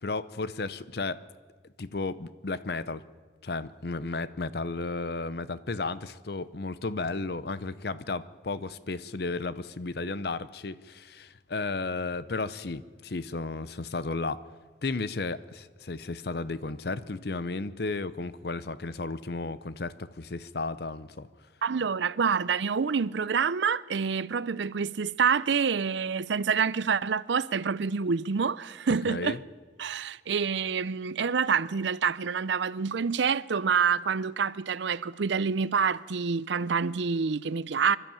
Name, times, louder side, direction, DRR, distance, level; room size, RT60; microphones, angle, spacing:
voice 1, 0.0-1.2 1.8-3.0 3.4-14.4 14.8-21.3 29.1-29.4, left 3 dB, 55° left, 0.7 m, -33 dB
voice 2, 21.6-29.4 29.8-38.0, right 6 dB, 75° right, 0.5 m, -27 dB
25.0 x 12.0 x 8.8 m
head